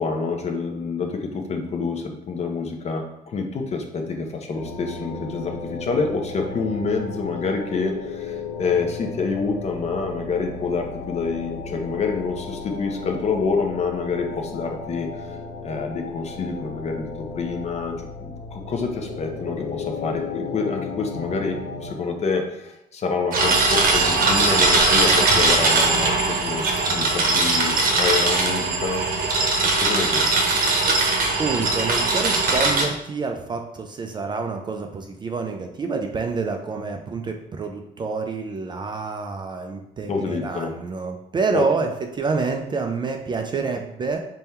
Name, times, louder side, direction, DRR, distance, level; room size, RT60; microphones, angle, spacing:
voice 1, 0.0-15.4 15.6-17.1 17.3-29.0 29.8-30.4 40.1-40.7 41.5-41.7, left 4 dB, 40° left, 4 dB, 0.6 m, -27 dB
sound 1, 4.5-21.9, left 4 dB, 80° left, 0.7 m, -35 dB
sound 2, 23.3-32.9, right 3 dB, 55° right, 0.8 m, -20 dB
voice 2, 31.4-44.2, right 4 dB, 25° right, 4 dB, 0.3 m, -27 dB
3.5 x 2.2 x 4.2 m, 0.80 s
cardioid pair, 110°, 17 cm